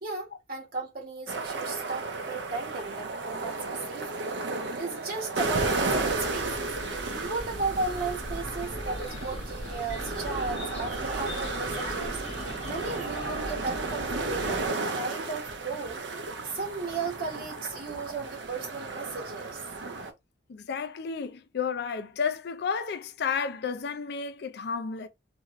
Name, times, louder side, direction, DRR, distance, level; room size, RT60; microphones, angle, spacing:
voice 1, 0.0-3.6 3.9-4.4 4.7-6.7 7.2-12.2 12.6-16.0 16.5-19.6, right 3 dB, 55° right, 1.2 m, -35 dB
sound 1, 1.3-20.1, right 3 dB, 75° right, 0.6 m, -33 dB
sound 2, 5.4-14.7, left 1 dB, 35° left, 0.9 m, -39 dB
voice 2, 20.5-25.1, left 6 dB, 65° left, 0.5 m, -32 dB
2.6 x 2.5 x 2.9 m
head